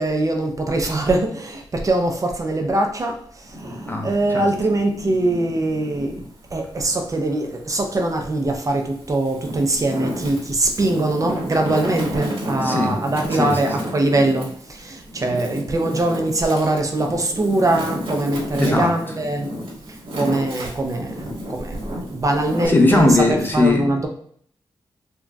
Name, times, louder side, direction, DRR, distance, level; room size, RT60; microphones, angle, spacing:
voice 1, 0.0-6.2 6.5-19.5 20.1-21.8 22.1-23.2 23.5-24.1, right 2 dB, 35° right, 3 dB, 0.4 m, -22 dB
Wind, 3.4-6.3 6.8-8.1 8.7-22.7, equal, 70° right, 1.1 m, -32 dB
voice 2, 3.9-4.5 12.6-13.0 13.3-13.9 18.4-19.0 22.7-24.0, left 2 dB, 20° left, 2 dB, 0.5 m, -19 dB
3.8 x 2.2 x 2.3 m, 0.62 s
wide cardioid pair, 100°, 10 cm